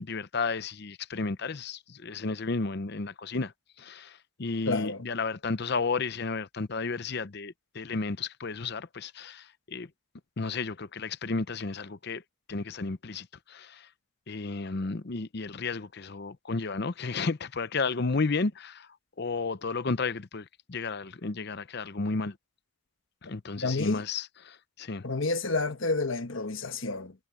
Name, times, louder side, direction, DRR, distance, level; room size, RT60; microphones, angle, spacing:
voice 1, 0.0-3.5 3.8-9.9 10.4-12.2 12.5-13.9 14.3-18.9 19.2-22.4 23.3-25.1, left 4 dB, 50° left, 0.7 m, -32 dB
voice 2, 4.7-5.0 23.6-24.0 25.0-27.1, left 3 dB, 65° left, 1.4 m, -30 dB
head